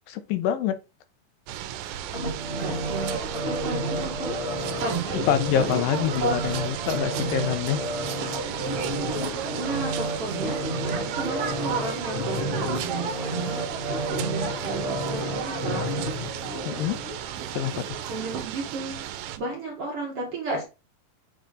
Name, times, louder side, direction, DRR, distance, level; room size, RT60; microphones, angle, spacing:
voice 1, 0.1-0.8 5.3-7.8 16.7-17.0 17.5-18.0, left 10 dB, 80° left, 2.4 m, -26 dB
sound 1, 1.5-19.4, right 11 dB, 85° right, 2.4 m, -36 dB
sound 2, 1.8-18.4, right 6 dB, 70° right, 1.4 m, -38 dB
sound 3, 2.1-17.2 17.6-17.7, equal, 35° left, 1.0 m, -31 dB
voice 2, 2.5-4.4 4.8-5.3 5.5-6.5 9.6-13.7 14.1-16.0 18.1-19.1 19.4-20.6, right 3 dB, 55° right, 1.9 m, -33 dB
7.4 x 3.4 x 3.8 m
omnidirectional pair, 4.0 m